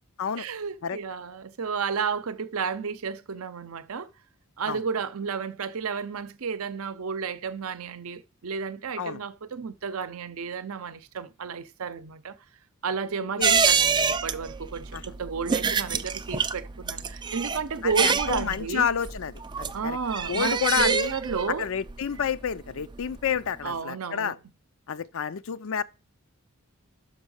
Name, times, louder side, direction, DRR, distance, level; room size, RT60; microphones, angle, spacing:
voice 1, 0.4-4.1 4.6-12.4 12.8-18.9 19.7-21.7 23.6-24.4, right 5 dB, 65° right, 0.6 m, -32 dB
sound 1, 13.4-23.4 23.6-23.7, right 6 dB, 20° right, 0.3 m, -27 dB
voice 2, 17.8-20.0 20.3-21.1 21.6-24.4 24.9-25.8, left 7 dB, 65° left, 0.5 m, -29 dB
6.1 x 5.4 x 6.4 m
head